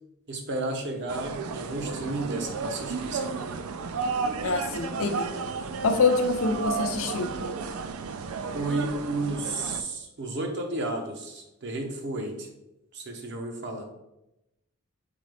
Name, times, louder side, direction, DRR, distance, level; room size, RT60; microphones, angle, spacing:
voice 1, 0.3-3.4 8.5-12.5 12.9-13.8, right 2 dB, 55° right, 3 dB, 0.8 m, -32 dB
sound 1, 1.1-9.8, right 5 dB, 85° right, 0.4 m, -33 dB
voice 2, 4.4-5.3 5.8-7.3, left 4 dB, 70° left, 6 dB, 0.6 m, -25 dB
3.9 x 3.8 x 3.3 m, 0.90 s
head